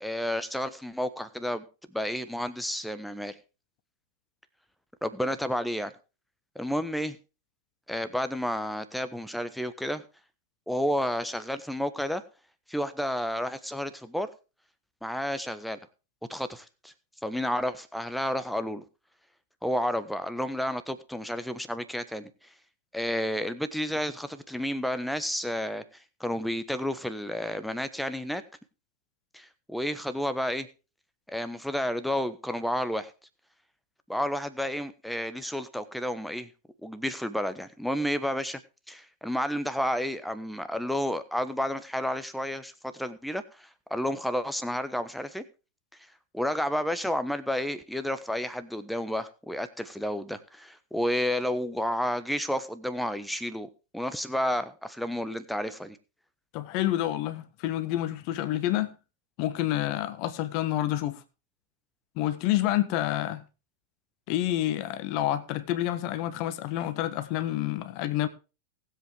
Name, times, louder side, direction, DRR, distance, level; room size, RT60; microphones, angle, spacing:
voice 1, 0.0-1.6 1.9-3.4 5.0-5.9 6.5-7.2 7.9-10.0 10.7-12.2 12.7-14.3 15.0-15.8 16.3-16.9 17.2-18.8 19.6-22.3 22.9-25.8 26.2-28.4 29.3-30.7 31.3-33.1 34.1-36.5 36.8-38.6 38.9-45.4 46.3-56.0, equal, ahead, 1.2 m, -31 dB
voice 2, 56.5-58.9 59.4-61.2 62.2-63.4 64.3-68.3, left 14 dB, 45° left, 1.2 m, -28 dB
19.5 x 8.0 x 3.5 m
figure-of-eight pair, 90°, 0 cm